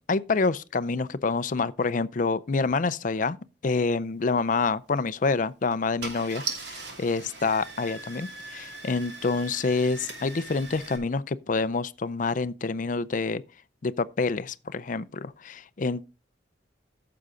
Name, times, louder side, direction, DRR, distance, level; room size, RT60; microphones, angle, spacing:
voice 1, 0.1-3.4 3.6-13.4 13.8-16.1, left 4 dB, 45° left, 0.5 m, -27 dB
Car / Engine starting, 4.9-5.1 5.7-5.8 6.0-11.0, right 4 dB, 70° right, 2.6 m, -39 dB
14.5 x 6.8 x 3.7 m
head